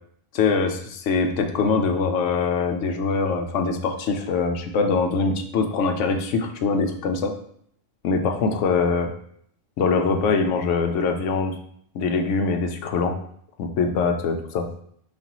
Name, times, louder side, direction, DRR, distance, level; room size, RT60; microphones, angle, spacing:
voice 1, 0.3-7.3 8.0-9.1 9.8-11.5 11.9-13.2 13.6-14.7, left 4 dB, 75° left, 5 dB, 0.9 m, -23 dB
4.2 x 3.3 x 2.9 m, 0.65 s
omnidirectional pair, 1.3 m